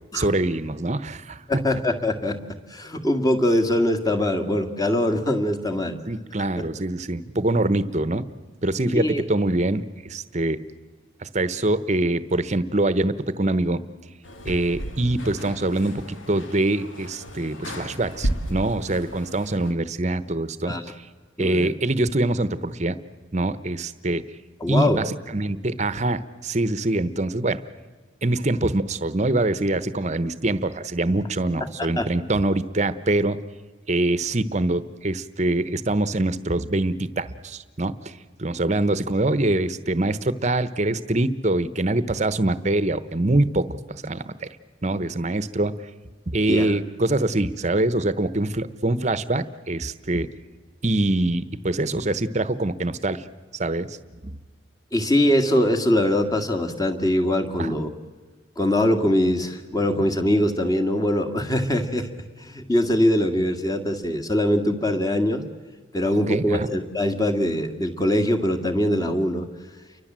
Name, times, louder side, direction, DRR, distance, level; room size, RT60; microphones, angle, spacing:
voice 1, 0.1-1.4 6.1-8.3 8.6-10.6 11.2-13.8 14.4-20.7 21.4-23.0 23.3-24.2 24.7-27.6 28.2-33.4 33.9-44.5 44.8-45.7 46.3-50.3 50.8-53.2 53.5-54.0 54.2-54.3 57.6-57.7 66.3-66.7, right 2 dB, 35° right, 15 dB, 1.0 m, -24 dB
voice 2, 1.5-2.4 2.7-6.0 6.6-6.7 8.9-9.2 20.7-20.8 21.4-21.7 24.6-25.0 31.8-32.1 46.5-46.7 54.9-57.9 58.6-62.1 62.4-65.4 65.9-69.5, left 1 dB, 20° left, 4 dB, 2.1 m, -22 dB
sound 1, 14.2-19.7, equal, 85° left, 2.8 m, -33 dB
29.5 x 24.0 x 7.6 m, 1.4 s
head